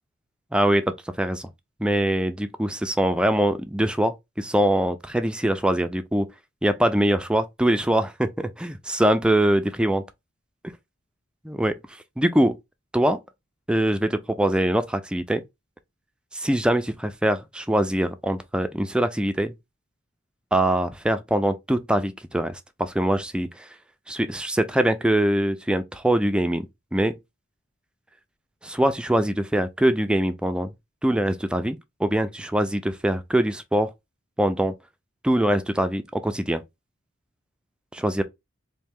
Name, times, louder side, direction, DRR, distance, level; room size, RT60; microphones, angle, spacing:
voice 1, 0.5-1.5 1.8-6.3 6.6-10.0 11.4-11.8 12.2-12.6 12.9-13.2 13.7-15.4 16.3-19.5 20.5-23.7 24.1-26.7 26.9-27.2 28.6-30.7 31.0-33.9 34.4-34.7 35.2-36.6 37.9-38.2, right 1 dB, 5° right, 0.3 m, -23 dB
3.2 x 2.6 x 3.5 m
head